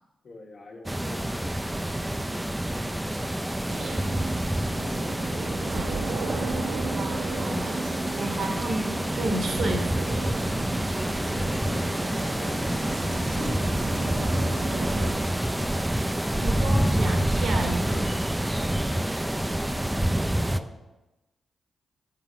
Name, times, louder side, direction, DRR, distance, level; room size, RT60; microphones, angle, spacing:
voice 1, 0.2-3.7 4.8-6.2 11.1-15.8 20.3-20.8, left 2 dB, 60° left, -1 dB, 1.2 m, -45 dB
sound 1, 0.9-20.6, right 1 dB, 10° right, 0.4 m, -27 dB
sound 2, 3.7-15.1, right 3 dB, 85° right, 0.8 m, -35 dB
voice 2, 4.0-4.6 6.7-10.4 16.3-18.2, right 2 dB, 70° right, 2 dB, 1.2 m, -33 dB
sound 3, 5.3-6.7 10.1-20.2, right 3 dB, 50° right, 0.6 m, -45 dB
5.6 x 3.8 x 5.8 m, 1.1 s
supercardioid pair, 45°, 0 cm